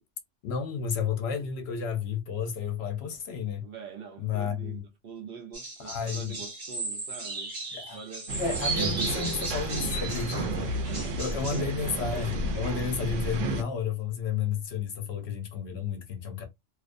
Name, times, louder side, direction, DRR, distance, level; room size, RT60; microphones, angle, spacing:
voice 1, 0.4-3.7 4.2-4.8 5.8-6.3 7.7-8.0 8.3-10.7 11.2-16.5, left 6 dB, 65° left, 0.8 m, -32 dB
voice 2, 3.6-8.4 9.0-9.5 10.8-11.2 11.6-11.7 12.3-12.4, right 6 dB, 60° right, 0.7 m, -45 dB
sound 1, 5.5-11.6, right 3 dB, 40° right, 1.1 m, -35 dB
sound 2, 8.3-13.6, right 2 dB, 85° right, 0.9 m, -32 dB
2.4 x 2.1 x 2.5 m
omnidirectional pair, 1.2 m